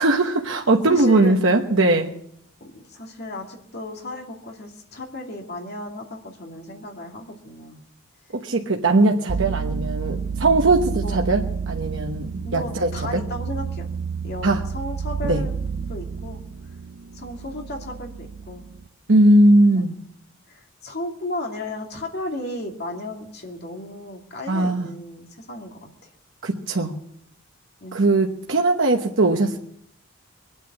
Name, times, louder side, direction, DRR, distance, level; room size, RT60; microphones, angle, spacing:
voice 1, 0.0-2.1 8.3-13.2 14.4-14.6 15.2-15.4 19.1-19.9 24.5-24.9 26.4-26.9 27.9-29.6, right 2 dB, 60° right, 2 dB, 1.1 m, -19 dB
voice 2, 0.8-1.4 2.6-7.8 10.9-11.2 12.4-13.9 14.2-15.6 15.9-16.4 17.1-18.7 19.7-19.9 20.5-25.9 27.8-28.0, left 1 dB, 50° left, 1 dB, 2.6 m, -34 dB
sound 1, 9.3-18.9, right 6 dB, 80° right, 0.7 m, -30 dB
23.5 x 9.2 x 6.0 m, 0.71 s
head